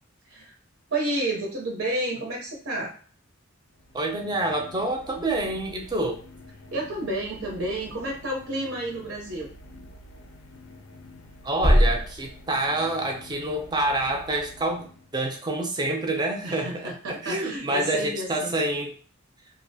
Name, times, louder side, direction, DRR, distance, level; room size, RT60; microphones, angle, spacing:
voice 1, 0.9-2.9 6.7-9.5 16.4-18.5, right 1 dB, 85° right, -1 dB, 0.6 m, -30 dB
sound 1, 3.7-15.5, left 1 dB, 85° left, 0.4 m, -48 dB
voice 2, 3.9-6.2 11.4-18.9, right 2 dB, 20° right, 3 dB, 0.4 m, -27 dB
sound 2, 5.3-14.6, equal, 35° left, 0.5 m, -31 dB
2.4 x 2.0 x 2.6 m, 0.44 s
head